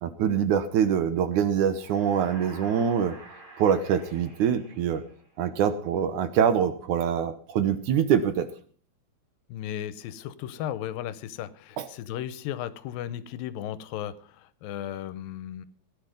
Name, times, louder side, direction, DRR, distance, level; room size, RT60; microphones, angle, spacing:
voice 1, 0.0-3.2 3.6-5.0 5.4-8.5 11.8-11.9, right 8 dB, 70° right, 11 dB, 2.2 m, -24 dB
sound 1, 1.7-5.6, right 2 dB, 35° right, 3.5 m, -48 dB
voice 2, 9.5-15.7, left 11 dB, 85° left, 15 dB, 2.5 m, -35 dB
16.5 x 10.5 x 5.2 m, 0.43 s
omnidirectional pair, 4.1 m